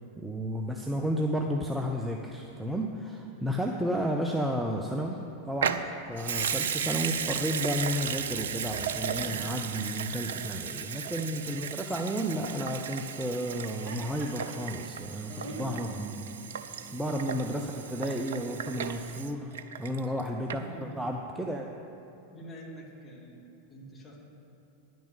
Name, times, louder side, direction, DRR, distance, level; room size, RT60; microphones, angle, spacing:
voice 1, 0.2-16.3 16.9-20.6 21.0-21.7, equal, 5° right, 2 dB, 0.6 m, -32 dB
Water tap faucet / Sink (filling or washing) / Liquid, 5.6-20.2 20.5-20.6, right 7 dB, 60° right, 0.5 m, -35 dB
voice 2, 9.2-9.7 11.1-11.3 15.3-16.1 16.8-17.5 20.6-21.1 22.3-24.2, equal, 15° left, -3 dB, 2.2 m, -45 dB
Laughter, 13.5-18.6, right 2 dB, 45° right, 1.4 m, -48 dB
10.0 x 6.2 x 8.1 m, 3.0 s
figure-of-eight pair, 90°, 0 cm